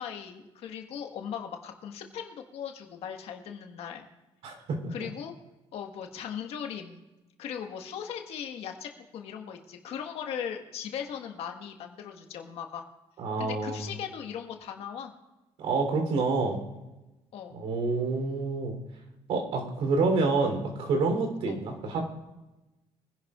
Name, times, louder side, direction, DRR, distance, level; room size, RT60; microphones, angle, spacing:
voice 1, 0.0-4.1 4.9-5.3 5.7-7.0 7.4-12.8 13.4-15.1 17.3-17.6 21.5-21.6, left 8 dB, 70° left, 4 dB, 1.6 m, -38 dB
voice 2, 4.4-4.9 13.2-13.9 15.6-16.6 17.5-18.8 19.3-22.1, right 3 dB, 70° right, 3 dB, 3.5 m, -28 dB
24.0 x 11.0 x 2.5 m, 1.0 s
cardioid pair, 120°, 11 cm